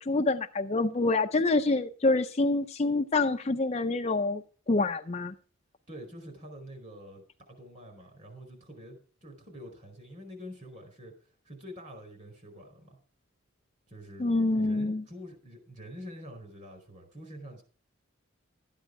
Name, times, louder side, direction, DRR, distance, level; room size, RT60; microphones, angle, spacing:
voice 1, 0.0-4.4 4.7-5.3 14.2-15.0, left 2 dB, 30° left, 0.5 m, -26 dB
voice 2, 5.9-13.0 13.9-14.3 14.5-17.6, equal, 35° right, 4.6 m, -46 dB
13.0 x 9.4 x 4.7 m
head